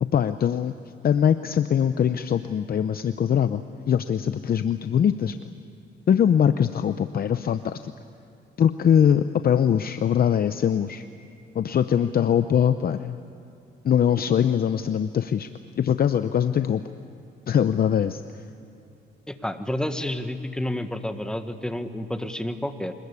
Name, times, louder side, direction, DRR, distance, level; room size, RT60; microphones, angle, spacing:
voice 1, 0.1-0.7 1.0-3.6 3.9-5.4 6.1-7.9 8.6-11.1 11.5-13.2 13.8-15.5 15.8-16.8 17.5-18.2, left 8 dB, 50° left, 11 dB, 0.7 m, -22 dB
voice 2, 19.3-22.9, left 1 dB, 5° left, 8 dB, 1.6 m, -30 dB
26.5 x 20.5 x 8.3 m, 2.7 s
cardioid pair, 90°, 20 cm